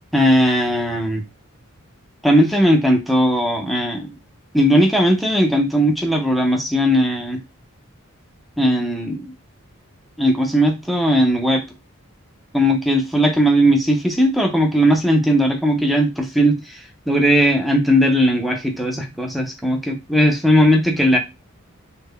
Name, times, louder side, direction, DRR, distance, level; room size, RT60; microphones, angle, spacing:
voice 1, 0.1-1.2 2.2-4.1 4.5-7.4 8.6-9.3 10.2-11.6 12.5-16.8 17.1-21.2, equal, ahead, 2 dB, 0.4 m, -17 dB
3.2 x 2.1 x 3.6 m, 0.24 s
head